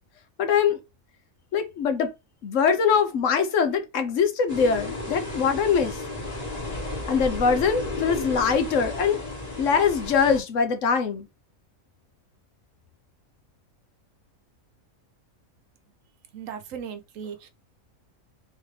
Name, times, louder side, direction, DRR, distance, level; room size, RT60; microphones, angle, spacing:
voice 1, 0.4-0.8 1.5-2.1 2.4-6.0 7.1-9.2 9.6-11.3, left 6 dB, 70° left, 1.1 m, -23 dB
sound 1, 4.5-10.4, left 2 dB, 30° left, 1.4 m, -33 dB
voice 2, 16.3-17.5, right 7 dB, 70° right, 1.0 m, -37 dB
3.5 x 3.4 x 3.2 m
omnidirectional pair, 1.4 m